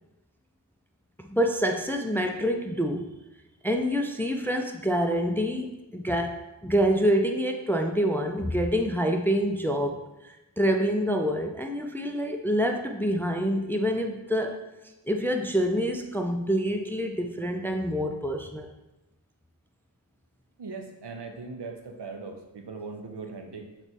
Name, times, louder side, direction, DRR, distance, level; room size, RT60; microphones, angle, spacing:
voice 1, 1.3-3.1 3.6-14.6 15.1-18.7, equal, 5° left, 4 dB, 0.3 m, -26 dB
voice 2, 20.6-23.7, right 4 dB, 80° right, 4 dB, 0.6 m, -39 dB
3.4 x 3.0 x 4.0 m, 1.0 s
wide cardioid pair, 40°, 41 cm